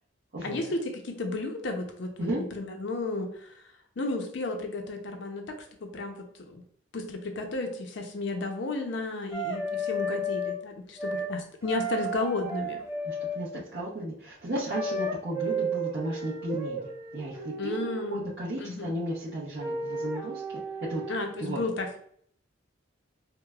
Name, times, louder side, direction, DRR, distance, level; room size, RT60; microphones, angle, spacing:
voice 1, 0.4-2.1 2.6-3.6 4.0-6.6 6.9-12.8 17.6-18.3 18.6-18.9 21.1-22.0, left 2 dB, 60° left, 4 dB, 0.5 m, -33 dB
sound 1, 9.3-10.6 11.0-11.3 11.6-13.5 14.7-18.1 19.6-21.3, right 1 dB, 15° right, 0.5 m, -33 dB
voice 2, 13.0-21.0 21.4-21.6, right 1 dB, 60° right, -7 dB, 0.7 m, -34 dB
4.7 x 2.1 x 2.3 m, 0.62 s
head